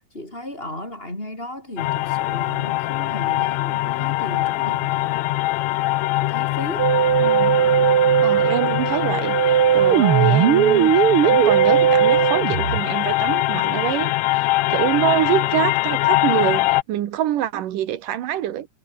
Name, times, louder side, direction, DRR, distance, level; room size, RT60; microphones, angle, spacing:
voice 1, 0.0-5.3 6.2-7.0, left 1 dB, 15° left, 8.0 m, -35 dB
sound 1, 1.8-16.8, left 18 dB, 80° left, 1.7 m, -23 dB
Musical instrument, 6.8-12.8, right 10 dB, 55° right, 1.8 m, -18 dB
voice 2, 7.2-7.6 8.2-9.4 9.7-18.7, right 12 dB, 85° right, 3.0 m, -25 dB
omnidirectional pair, 3.7 m